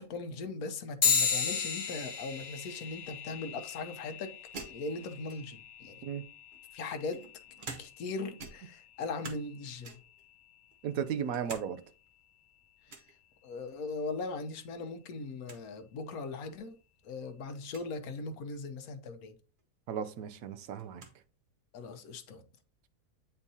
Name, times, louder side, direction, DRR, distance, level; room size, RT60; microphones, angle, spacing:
voice 1, 0.0-6.0 6.7-7.2 7.8-10.0 12.9-13.0 13.4-16.8 17.0-19.3 21.7-22.4, left 3 dB, 75° left, 1.2 m, -39 dB
sound 1, 1.0-10.8, left 6 dB, 55° left, 1.4 m, -36 dB
sound 2, 4.5-5.7 6.5-8.1 8.4-9.5 9.8-10.2 10.7-11.7 12.0-12.1 12.9-13.1 14.6-14.9 15.2-15.3 15.4-15.6 16.4-16.5 17.6-17.9 19.6-19.7 20.0-21.2, right 4 dB, 40° right, 0.9 m, -48 dB
voice 2, 10.8-11.8 19.9-21.0, right 8 dB, 70° right, 1.0 m, -35 dB
8.7 x 4.4 x 2.7 m
omnidirectional pair, 1.6 m